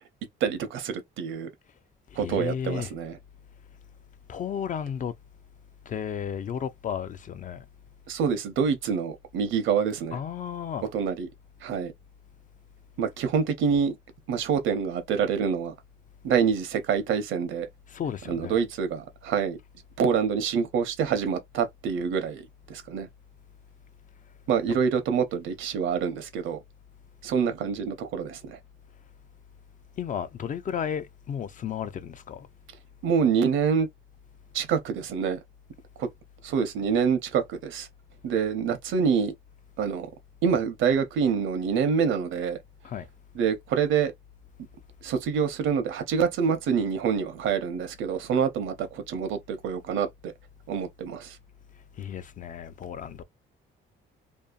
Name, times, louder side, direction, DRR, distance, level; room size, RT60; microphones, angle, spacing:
voice 1, 0.4-1.5 2.2-3.2 8.1-10.2 10.9-11.3 11.6-11.9 13.0-14.0 14.3-15.7 16.2-17.7 18.3-19.6 20.0-22.4 22.7-23.1 24.5-26.6 27.2-28.6 33.0-33.9 34.5-35.4 36.0-36.1 36.4-37.9 38.2-39.3 39.8-40.1 40.4-42.6 43.3-44.1 45.0-50.3 50.7-51.4, right 6 dB, 80° right, 0.7 m, -26 dB
voice 2, 2.1-2.9 4.3-5.1 5.9-7.6 10.1-10.9 17.9-18.6 24.7-24.8 30.0-32.5 42.8-43.1 52.0-53.2, left 8 dB, 40° left, 0.4 m, -33 dB
2.7 x 2.3 x 2.3 m
cardioid pair, 90°, 20 cm